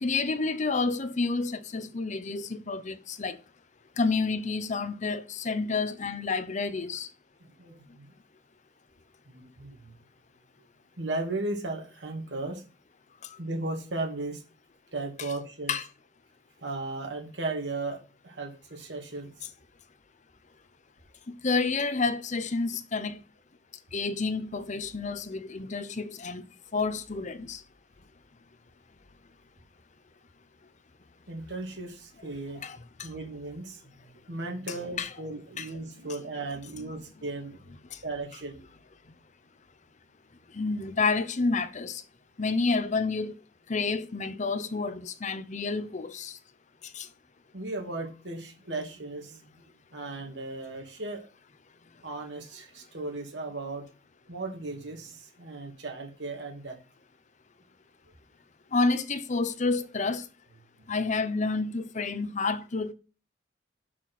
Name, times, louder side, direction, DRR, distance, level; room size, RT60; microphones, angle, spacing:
voice 1, 0.0-3.4 4.0-7.1 15.7-15.8 21.3-23.2 23.9-26.4 26.7-27.6 32.6-33.1 34.7-35.1 35.6-35.7 37.9-38.0 40.5-42.0 42.4-43.3 43.7-46.4 46.9-47.1 58.7-60.2 60.9-62.9, left 4 dB, 40° left, 0.7 m, -29 dB
voice 2, 7.6-8.2 9.3-9.9 11.0-12.6 13.4-14.4 14.9-15.7 16.6-19.3 31.3-32.6 33.0-37.6 38.0-38.6 47.5-51.3 52.0-53.9 54.3-56.8 60.8-60.9, right 2 dB, 70° right, 2.6 m, -36 dB
6.7 x 5.9 x 4.2 m
head